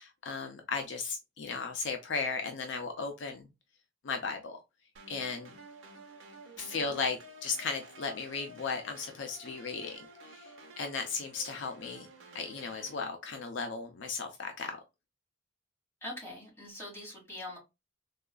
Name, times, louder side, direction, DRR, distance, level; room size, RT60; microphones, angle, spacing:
voice 1, 0.0-3.5 4.0-4.6 5.1-5.5 6.6-12.1 12.3-14.8, left 4 dB, 60° left, 0.5 m, -36 dB
sound 1, 5.0-13.0, right 1 dB, 75° right, 0.7 m, -52 dB
voice 2, 16.0-17.6, left 1 dB, 10° left, 1.8 m, -43 dB
3.8 x 2.4 x 2.2 m
head